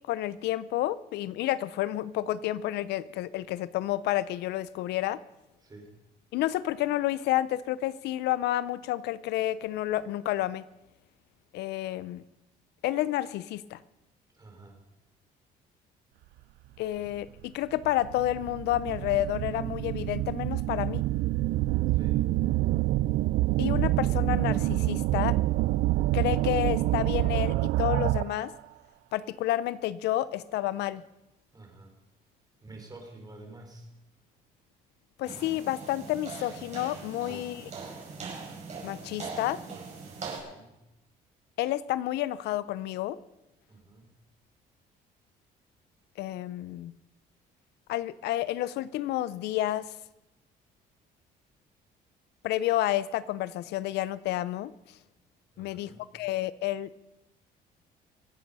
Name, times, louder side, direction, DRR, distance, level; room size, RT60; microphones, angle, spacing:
voice 1, 0.1-5.2 6.3-10.6 11.5-12.2 12.8-13.8 16.8-21.0 23.6-25.4 26.1-28.5 29.1-31.0 35.2-37.7 38.8-39.6 41.6-43.2 46.2-46.9 47.9-49.9 52.4-54.7 55.6-56.9, left 14 dB, 80° left, 18 dB, 0.6 m, -30 dB
voice 2, 14.3-14.8 21.9-22.2 31.5-31.9 32.6-33.9 37.3-37.4 40.2-40.8 43.7-44.1 55.5-56.1, right 2 dB, 20° right, 3 dB, 4.3 m, -49 dB
sound 1, 17.1-17.2 17.8-28.5, right 17 dB, 75° right, 0.4 m, -27 dB
sound 2, 35.2-40.4, right 4 dB, 40° right, 5.5 m, -41 dB
25.0 x 8.6 x 5.5 m, 0.95 s
cardioid pair, 110°, 17 cm